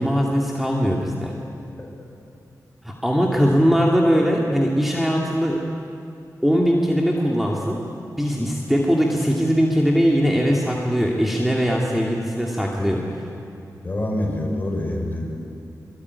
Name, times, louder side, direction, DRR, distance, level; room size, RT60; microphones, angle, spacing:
voice 1, 0.0-1.3 2.8-5.6 6.4-7.8 8.2-13.3, equal, 5° right, -1 dB, 2.7 m, -20 dB
voice 2, 13.8-15.3, left 1 dB, 30° left, 0 dB, 6.7 m, -27 dB
24.0 x 23.5 x 9.8 m, 2.5 s
wide cardioid pair, 85°, 7 cm